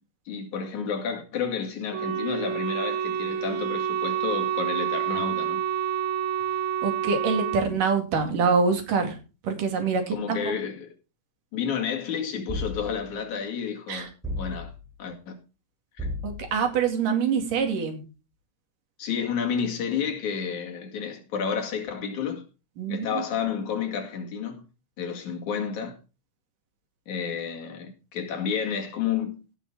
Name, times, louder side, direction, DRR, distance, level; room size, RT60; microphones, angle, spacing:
voice 1, 0.3-5.6 10.1-10.9 11.5-14.1 14.4-14.7 15.0-15.4 16.0-16.1 19.0-22.4 22.9-24.7 25.0-26.0 27.1-29.4, left 7 dB, 65° left, 3.5 m, -30 dB
Wind instrument woodwind instrument, 1.9-7.7, right 9 dB, 70° right, 2.2 m, -28 dB
voice 2, 6.8-9.2 9.4-10.4 13.9-14.1 16.2-18.0 22.8-23.2, right 5 dB, 90° right, 4.0 m, -25 dB
sound 1, 12.5-13.2 14.2-15.0 16.0-16.7, left 1 dB, ahead, 4.6 m, -34 dB
16.0 x 6.6 x 5.0 m
omnidirectional pair, 3.7 m